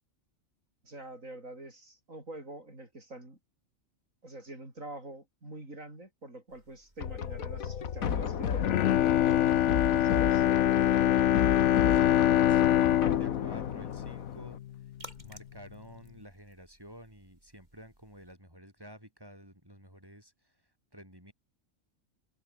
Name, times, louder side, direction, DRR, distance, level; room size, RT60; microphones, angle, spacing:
voice 1, 0.8-3.4 4.2-8.8 9.7-10.5, right 1 dB, 70° right, 7.8 m, -46 dB
sound 1, 6.5-18.4, right 1 dB, 30° right, 7.5 m, -59 dB
sound 2, 7.0-14.6, left 8 dB, 90° left, 1.7 m, -34 dB
Bowed string instrument, 8.5-14.8 15.2-15.3, left 12 dB, 65° left, 0.9 m, -25 dB
voice 2, 11.4-14.6 15.2-20.5 20.9-21.3, equal, 15° right, 6.1 m, -51 dB
omnidirectional pair, 1.4 m